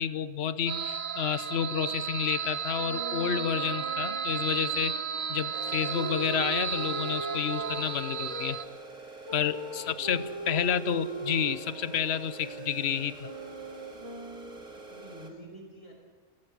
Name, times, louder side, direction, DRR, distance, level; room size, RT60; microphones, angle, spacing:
voice 1, 0.0-4.9 5.3-8.6 9.3-13.3, left 8 dB, 60° left, 14 dB, 1.1 m, -30 dB
sound 1, 0.7-8.6, right 7 dB, 45° right, 0.9 m, -33 dB
sound 2, 2.7-8.6 9.3-14.7, right 2 dB, 20° right, 1.3 m, -40 dB
sound 3, 5.5-15.3, right 3 dB, 90° right, 2.8 m, -46 dB
voice 2, 9.6-10.1 10.4-10.7 14.6-15.9, equal, 85° left, 1 dB, 5.8 m, -49 dB
29.5 x 17.5 x 6.2 m, 1.4 s
omnidirectional pair, 1.3 m